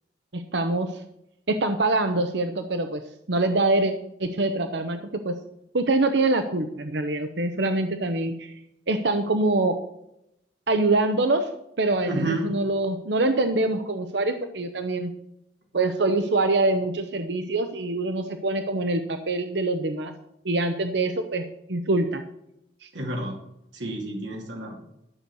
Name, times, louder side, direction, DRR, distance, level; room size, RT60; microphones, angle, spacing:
voice 1, 0.3-1.0 1.5-3.0 3.3-3.9 4.2-5.4 5.7-8.5 8.9-9.8 10.7-11.5 11.8-15.1 15.7-20.1 20.4-21.4 21.7-22.2 22.8-22.9, right 2 dB, 70° right, 8 dB, 0.9 m, -24 dB
voice 2, 12.1-12.5 22.9-23.3 23.7-24.7, right 2 dB, 85° right, 0 dB, 2.5 m, -29 dB
12.0 x 6.4 x 6.9 m, 0.81 s
head